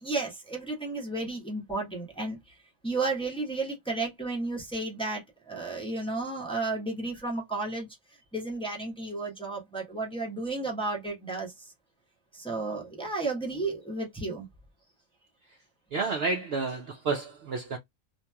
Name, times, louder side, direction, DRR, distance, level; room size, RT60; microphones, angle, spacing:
voice 1, 0.0-2.5 2.8-7.9 8.3-11.7 12.3-14.5, right 3 dB, 5° left, 0.9 m, -33 dB
voice 2, 15.9-17.8, right 4 dB, 60° right, 0.7 m, -30 dB
3.0 x 2.5 x 2.2 m
omnidirectional pair, 1.4 m